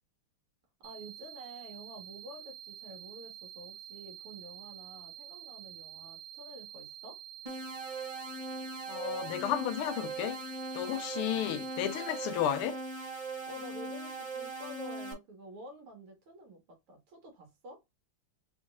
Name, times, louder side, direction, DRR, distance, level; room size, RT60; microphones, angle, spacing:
sound 1, 0.8-12.3, right 11 dB, 60° right, 1.4 m, -48 dB
voice 1, 0.8-7.2 13.5-17.8, equal, 85° right, 2.5 m, -49 dB
sound 2, 7.5-15.1, right 3 dB, 25° right, 0.9 m, -40 dB
voice 2, 8.9-10.4 10.7-12.8, left 10 dB, 85° left, 1.5 m, -33 dB
5.1 x 3.1 x 2.5 m
omnidirectional pair, 2.4 m